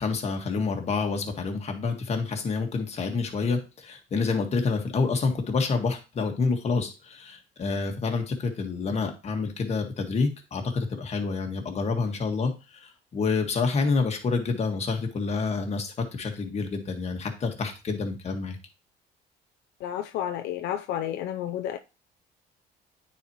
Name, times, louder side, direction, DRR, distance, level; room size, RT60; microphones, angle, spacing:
voice 1, 0.0-18.6, left 4 dB, 40° left, 1.7 m, -28 dB
voice 2, 19.8-21.8, left 11 dB, 80° left, 0.5 m, -31 dB
9.2 x 4.3 x 3.0 m
cardioid pair, 110°, 17 cm